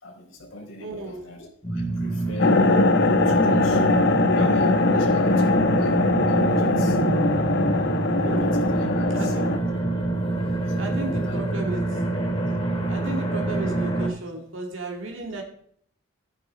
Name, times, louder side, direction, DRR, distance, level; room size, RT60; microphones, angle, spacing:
voice 1, 0.0-2.6 3.2-3.8 4.3-6.0 6.2-7.0 8.2-9.3 10.7-11.4, left 2 dB, 85° left, 4.5 m, -40 dB
voice 2, 0.8-1.3 8.2-8.7 9.1-9.6 10.8-12.2 12.9-15.4, right 2 dB, 75° right, 2.2 m, -34 dB
sound 1, 1.6-14.1, right 2 dB, 30° left, 3.0 m, -26 dB
sound 2, 2.4-9.6, left 3 dB, 60° left, 1.1 m, -21 dB
13.5 x 9.8 x 4.2 m
head